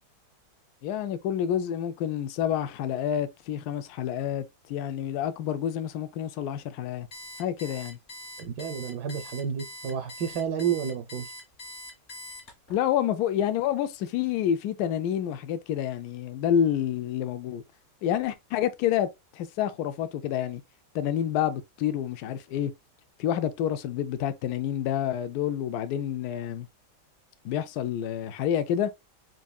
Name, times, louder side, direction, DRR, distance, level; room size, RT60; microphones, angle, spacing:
voice 1, 0.8-7.1 7.4-8.0 12.7-17.6 18.0-20.6 20.9-22.7 23.2-26.7 27.4-28.9, left 10 dB, 70° left, 1.0 m, -28 dB
Alarm, 7.1-12.8, left 1 dB, 50° left, 1.7 m, -43 dB
voice 2, 8.4-11.3, right 7 dB, 75° right, 1.1 m, -30 dB
4.7 x 2.7 x 2.2 m
omnidirectional pair, 1.8 m